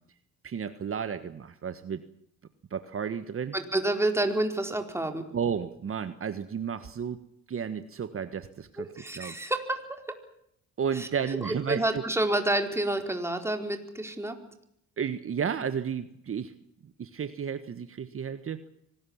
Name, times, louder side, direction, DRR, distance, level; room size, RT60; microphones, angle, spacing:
voice 1, 0.4-2.0 2.7-3.6 5.3-7.2 7.5-8.9 9.1-9.4 10.8-12.0 15.0-16.5 16.8-18.6, right 7 dB, 45° right, 11 dB, 1.6 m, -32 dB
voice 2, 3.5-5.2 8.8-10.2 10.9-14.4, right 1 dB, 10° right, 5 dB, 4.5 m, -29 dB
25.0 x 19.5 x 7.3 m, 0.74 s
cardioid pair, 90°, 30 cm